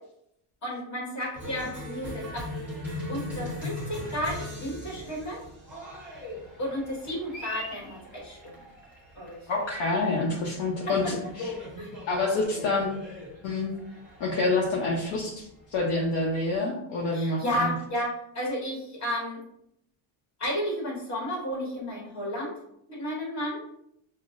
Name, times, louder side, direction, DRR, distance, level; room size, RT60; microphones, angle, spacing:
voice 1, 0.6-2.4 3.1-5.4 6.6-8.5 9.1-9.4 11.8-11.9 17.1-19.4 20.4-22.5 22.9-23.6, equal, 35° left, -3 dB, 1.5 m, -32 dB
Cheering, 1.3-16.5, left 1 dB, 5° right, 1.4 m, -40 dB
voice 2, 9.5-11.6 12.1-12.9 13.4-13.7 14.2-17.7, left 3 dB, 60° left, -3 dB, 0.8 m, -27 dB
5.5 x 2.1 x 2.5 m, 0.77 s
cardioid pair, 150°, 49 cm